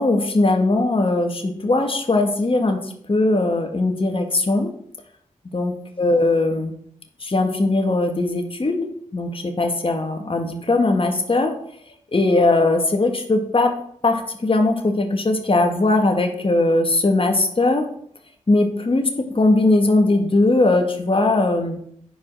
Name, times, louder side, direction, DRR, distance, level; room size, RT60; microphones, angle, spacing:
voice 1, 0.0-4.7 5.5-6.7 7.2-8.8 9.1-11.5 12.1-13.7 14.0-17.8 18.5-19.0 19.4-21.8, left 2 dB, 40° left, 4 dB, 1.7 m, -19 dB
10.0 x 5.0 x 6.2 m, 0.66 s
cardioid pair, 60°, 14 cm